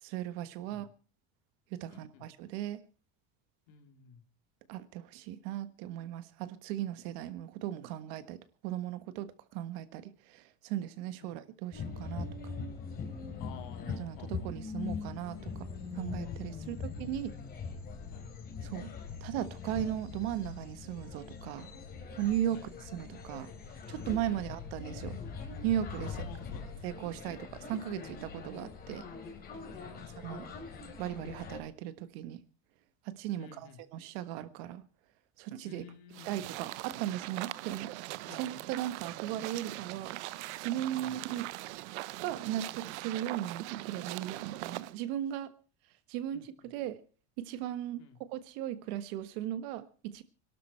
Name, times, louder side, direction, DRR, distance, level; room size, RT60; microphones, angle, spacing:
voice 1, 0.0-0.9 1.7-2.8 4.7-12.5 14.0-15.7 15.9-17.3 18.6-18.9 19.2-21.7 22.1-25.2 25.6-26.2 26.8-29.1 30.2-30.5 31.0-32.4 33.0-34.8 35.4-35.8 36.2-40.2 40.6-41.5 42.2-45.5 46.1-47.0 47.4-48.0 48.3-50.2, right 12 dB, 65° right, 1.5 m, -37 dB
voice 2, 1.9-2.2 3.7-4.2 11.2-11.4 13.4-14.5 16.5-17.1 18.1-18.3 22.5-22.8 24.3-24.6 26.1-27.1 29.7-30.3 33.4-33.8 35.6-36.3 38.3-38.6 40.8-41.2 46.3-46.7 48.0-48.2, left 8 dB, 60° left, 3.0 m, -53 dB
sound 1, 11.7-31.6, left 5 dB, 30° left, 3.5 m, -42 dB
sound 2, 36.1-44.9, right 19 dB, 90° right, 0.8 m, -41 dB
22.0 x 12.5 x 4.5 m
cardioid pair, 165°, 33 cm